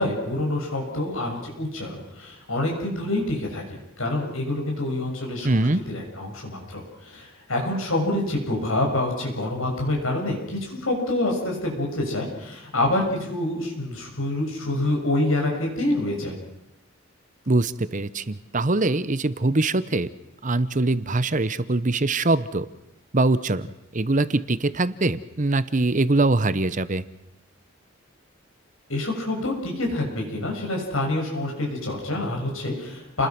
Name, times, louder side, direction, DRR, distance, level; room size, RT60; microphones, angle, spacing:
voice 1, 0.0-16.4 28.9-33.3, left 1 dB, 80° left, 1 dB, 6.7 m, -27 dB
voice 2, 5.4-5.8 17.5-20.1 20.4-22.7 23.1-23.7 23.9-27.0, right 2 dB, 40° right, 15 dB, 1.0 m, -23 dB
30.0 x 20.5 x 6.1 m, 0.85 s
head